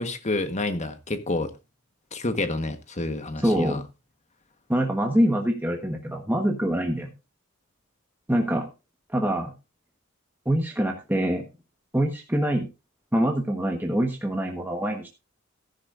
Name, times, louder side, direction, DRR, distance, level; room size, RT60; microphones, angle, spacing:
voice 1, 0.0-1.5 2.1-3.8, left 2 dB, 35° left, 1.4 m, -29 dB
voice 2, 3.4-3.8 4.7-7.1 8.3-8.6 9.1-9.5 10.4-11.4 11.9-12.7 13.1-15.1, equal, 10° right, 1.3 m, -24 dB
14.0 x 11.0 x 2.6 m
head